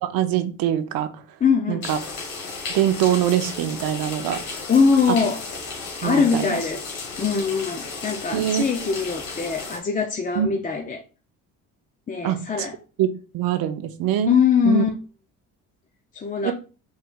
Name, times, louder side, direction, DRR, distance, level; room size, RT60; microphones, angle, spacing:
voice 1, 0.0-1.1 1.7-2.0 2.7-4.4 6.0-6.6 8.3-8.6 10.4-10.5 12.2-12.7 13.0-13.1 13.3-14.3 14.6-14.8 16.4-16.5, right 11 dB, 70° right, 0.6 m, -23 dB
voice 2, 1.4-1.9 4.7-5.4 6.0-6.8 7.2-11.0 12.1-12.7 14.3-14.9 16.1-16.5, left 6 dB, 25° left, 0.5 m, -22 dB
sound 1, 1.8-9.8, left 4 dB, 80° left, 1.5 m, -34 dB
4.7 x 3.2 x 2.3 m
supercardioid pair, 75°, 36 cm